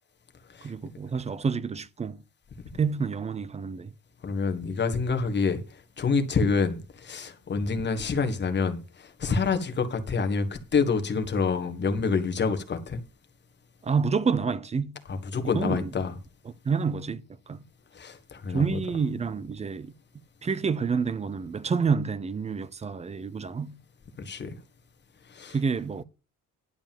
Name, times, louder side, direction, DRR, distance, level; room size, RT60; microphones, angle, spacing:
voice 1, 0.6-2.2 2.8-3.9 13.8-15.0 15.4-15.9 16.7-17.2 17.5-17.6 18.5-19.9 20.4-23.8 25.5-26.0, right 5 dB, 20° right, 0.5 m, -28 dB
voice 2, 4.2-5.6 6.0-13.0 15.1-16.2 17.9-18.8 24.2-24.5 25.3-25.6, left 4 dB, 30° left, 1.6 m, -27 dB
11.0 x 5.1 x 7.2 m
cardioid pair, 170°, 34 cm